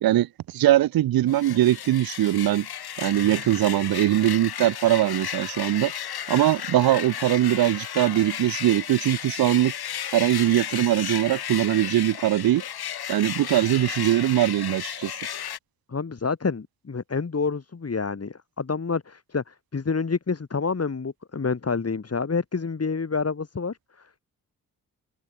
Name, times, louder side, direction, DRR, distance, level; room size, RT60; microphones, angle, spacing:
voice 1, 0.0-2.7 3.0-5.9 6.3-9.7 10.1-12.6 13.1-15.1, right 14 dB, 70° right, 0.7 m, -21 dB
sound 1, 1.3-15.6, left 10 dB, 80° left, 5.0 m, -34 dB
voice 2, 15.9-24.2, left 4 dB, 40° left, 3.6 m, -28 dB
cardioid pair, 55°, 37 cm